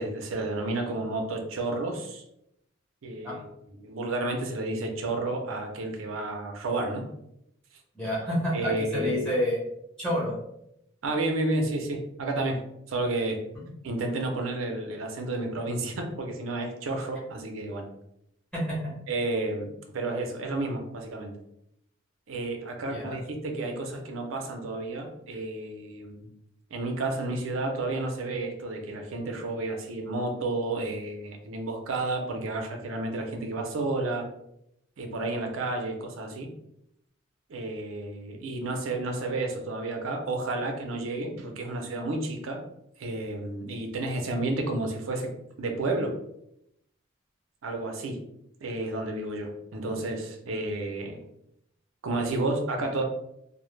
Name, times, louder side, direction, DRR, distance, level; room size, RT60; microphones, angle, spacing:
voice 1, 0.0-2.2 3.0-3.4 3.7-7.0 8.5-9.2 11.0-12.6 12.9-13.4 13.8-17.9 19.1-21.3 22.3-26.3 26.7-34.2 35.0-36.5 37.5-42.6 43.0-45.3 45.6-46.1 47.6-48.2 48.6-51.2 52.0-53.0, right 2 dB, 85° right, 4 dB, 0.5 m, -31 dB
voice 2, 7.9-9.6 10.0-10.4 18.5-18.9 22.9-23.1, equal, 5° left, -6 dB, 0.9 m, -28 dB
2.0 x 2.0 x 3.0 m, 0.78 s
head